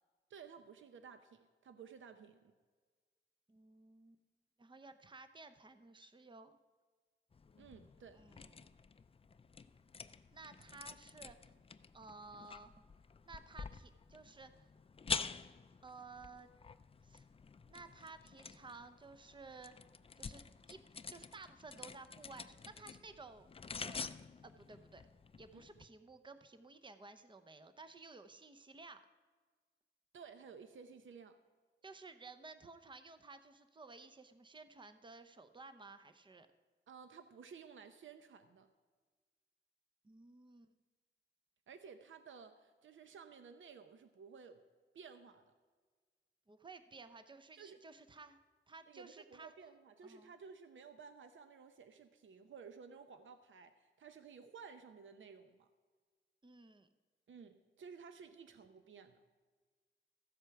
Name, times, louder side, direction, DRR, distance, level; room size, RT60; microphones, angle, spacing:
voice 1, 0.3-2.5 7.6-8.2 25.5-25.6 30.1-31.4 36.9-38.7 41.7-44.6 44.9-45.5 47.6-47.8 48.9-55.7 57.3-59.2, right 6 dB, 75° right, 9 dB, 0.7 m, -55 dB
voice 2, 3.5-4.2 4.6-6.5 8.1-8.7 10.3-11.5 11.9-12.8 13.3-14.7 15.8-16.5 17.0-17.3 17.7-19.7 20.2-20.8 21.1-24.1 24.4-25.0 25.4-29.0 31.8-36.5 40.0-40.7 46.5-48.4 48.7-49.5 50.0-50.3 56.4-56.9, right 3 dB, 25° right, 10 dB, 0.7 m, -55 dB
sound 1, 7.3-25.9, left 5 dB, 30° left, 0.4 m, -48 dB
14.5 x 8.0 x 5.7 m, 1.5 s
wide cardioid pair, 115°, 20 cm